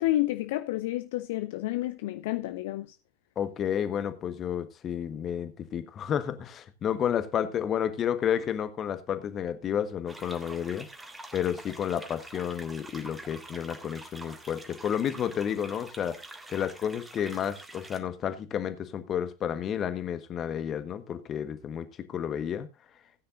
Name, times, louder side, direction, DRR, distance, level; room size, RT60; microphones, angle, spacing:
voice 1, 0.0-3.0, left 16 dB, 50° left, 0.6 m, -30 dB
voice 2, 3.3-10.9 11.3-16.2 16.5-22.7, left 9 dB, 25° left, 1.4 m, -31 dB
sound 1, 10.1-18.0, right 2 dB, 10° right, 2.0 m, -46 dB
17.5 x 9.6 x 2.6 m
figure-of-eight pair, 90°, 0 cm